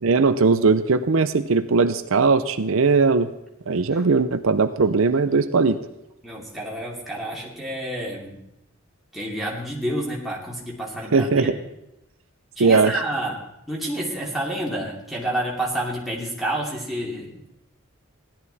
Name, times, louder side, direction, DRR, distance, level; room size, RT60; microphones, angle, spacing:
voice 1, 0.0-3.3 3.7-5.8 11.1-11.6 12.6-12.9, right 4 dB, 70° right, 11 dB, 0.6 m, -19 dB
voice 2, 6.2-8.4 9.1-11.5 12.6-13.4 13.7-17.5, right 1 dB, ahead, -5 dB, 2.8 m, -29 dB
16.5 x 12.0 x 4.2 m, 0.86 s
head